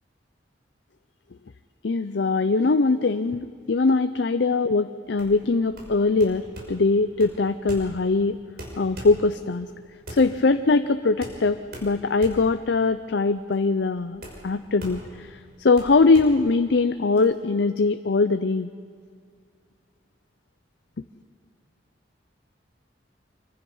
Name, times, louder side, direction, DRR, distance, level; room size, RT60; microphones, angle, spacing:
voice 1, 1.8-8.4 8.8-9.7 10.1-18.7, left 3 dB, 65° left, 10 dB, 0.6 m, -22 dB
sound 1, 5.1-17.2, equal, 55° right, 5.7 m, -42 dB
26.0 x 24.0 x 5.5 m, 2.2 s
head